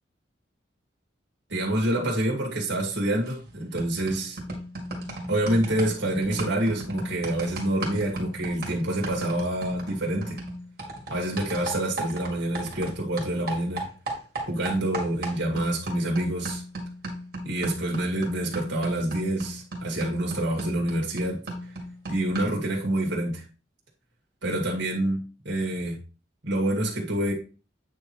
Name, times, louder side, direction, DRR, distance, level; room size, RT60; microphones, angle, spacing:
voice 1, 1.5-4.4 5.3-10.4 11.1-13.9 14.5-16.6 17.5-21.4 22.1-23.4 24.4-26.0 26.4-27.3, right 1 dB, 65° right, -2 dB, 2.1 m, -27 dB
sound 1, 3.3-3.5 3.8-12.9 13.2-22.7, right 1 dB, 50° right, 2.2 m, -36 dB
8.7 x 3.2 x 4.3 m, 0.34 s
head